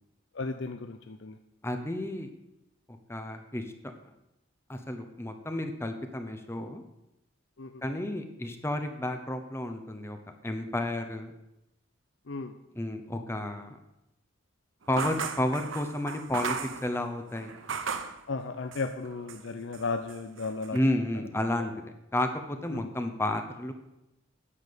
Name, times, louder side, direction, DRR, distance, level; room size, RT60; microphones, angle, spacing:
voice 1, 0.3-1.4 7.6-7.8 12.3-12.6 18.3-20.8 22.7-22.9, left 3 dB, 65° left, 7 dB, 0.6 m, -35 dB
voice 2, 1.6-2.3 2.9-3.9 4.7-6.8 7.8-10.2 10.4-11.3 12.8-13.8 14.9-17.5 20.7-23.7, left 1 dB, 15° left, 6 dB, 0.8 m, -32 dB
sound 1, 14.9-18.2 18.7-19.5 19.7-20.8, right 5 dB, 75° right, 0.9 m, -36 dB
9.9 x 7.4 x 6.8 m, 0.90 s
head